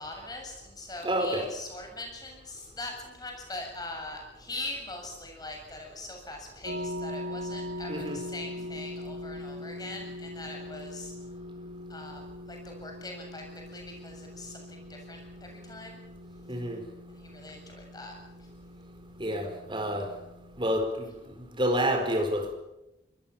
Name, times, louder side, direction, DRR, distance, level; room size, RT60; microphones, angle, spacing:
voice 1, 0.0-11.1 11.9-16.0 17.1-18.5, left 2 dB, 20° left, 7.3 m, -42 dB
voice 2, 1.0-1.5 7.9-8.2 16.5-16.8 19.2-20.1 20.6-22.5, equal, 25° right, 4.5 m, -29 dB
sound 1, 6.6-20.7, left 1 dB, 75° right, 2.8 m, -41 dB
25.5 x 20.0 x 7.3 m
head